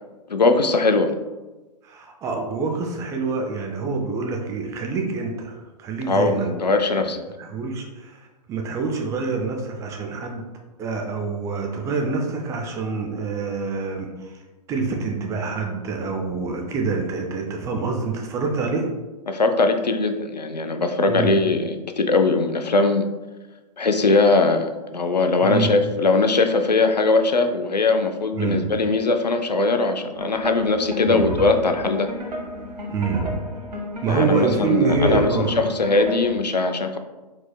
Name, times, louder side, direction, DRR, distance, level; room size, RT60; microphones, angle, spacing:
voice 1, 0.3-1.1 6.1-7.2 19.3-23.0 23.8-32.1 34.1-37.0, left 3 dB, 85° left, 7 dB, 0.5 m, -20 dB
voice 2, 1.8-6.5 6.9-8.2 8.5-10.4 10.8-14.4 14.7-18.9 21.1-21.4 25.4-25.7 28.4-28.7 31.1-31.4 32.9-33.3 34.0-35.6, right 4 dB, 15° right, 2 dB, 0.4 m, -26 dB
sound 1, 30.1-36.4, equal, 85° right, 1.0 m, -32 dB
4.3 x 4.0 x 2.2 m, 1.2 s
figure-of-eight pair, 115°, 21 cm